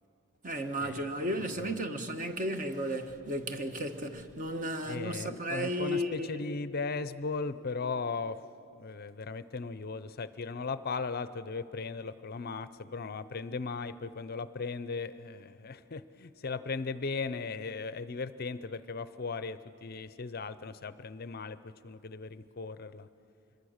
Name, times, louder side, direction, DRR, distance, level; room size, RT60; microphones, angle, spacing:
voice 1, 0.4-6.4, equal, 35° right, 1.2 m, -34 dB
voice 2, 4.9-8.4 8.8-23.1, left 4 dB, 45° left, 0.5 m, -37 dB
26.0 x 22.5 x 6.5 m
head